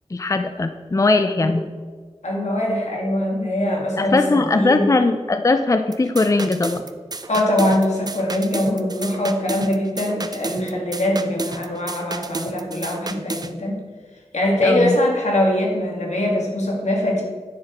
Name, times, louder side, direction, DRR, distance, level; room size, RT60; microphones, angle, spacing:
voice 1, 0.1-1.6 4.0-6.8 14.6-15.0, left 3 dB, 30° left, 8 dB, 0.4 m, -19 dB
voice 2, 2.2-5.0 7.3-13.8 14.3-17.2, left 1 dB, 85° left, -1 dB, 2.0 m, -22 dB
sound 1, 5.9-13.5, right 3 dB, 35° right, 0.5 m, -32 dB
9.7 x 5.8 x 4.5 m, 1.5 s
wide cardioid pair, 75°, 12 cm